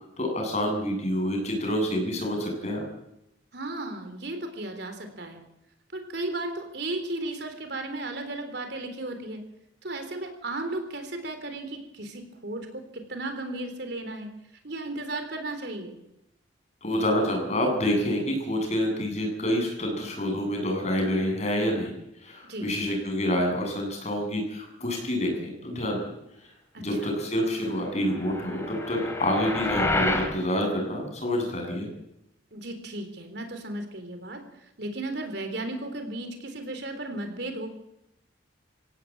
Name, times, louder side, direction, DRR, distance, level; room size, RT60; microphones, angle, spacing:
voice 1, 0.2-2.8 16.8-21.9 22.2-26.0 26.8-31.9, equal, 35° left, 2 dB, 7.8 m, -27 dB
voice 2, 3.5-5.4 5.9-9.4 9.8-14.3 14.6-16.0 22.5-22.7 26.7-27.1 32.5-37.7, right 2 dB, 55° right, 6 dB, 3.7 m, -35 dB
sound 1, 28.1-30.3, left 2 dB, 15° left, 4.6 m, -29 dB
28.0 x 17.0 x 8.7 m, 0.85 s
head